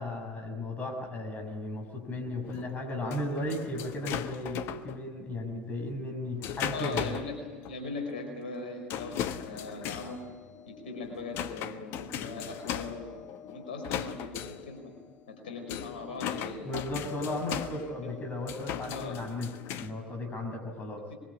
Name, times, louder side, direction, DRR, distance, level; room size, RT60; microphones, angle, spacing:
voice 1, 0.0-7.2 16.6-19.5 19.8-21.0, left 1 dB, 30° left, 4 dB, 6.3 m, -35 dB
sound 1, 2.0-5.0 5.8-7.3 7.6-7.8 8.1-8.2 8.9-19.9, left 10 dB, 50° left, 1.2 m, -38 dB
voice 2, 6.7-10.2 10.7-13.2 13.4-14.9 15.3-16.8 18.9-19.2, left 3 dB, 65° left, 3 dB, 5.1 m, -39 dB
25.0 x 22.5 x 8.5 m, 1.4 s
figure-of-eight pair, 70°, 5 cm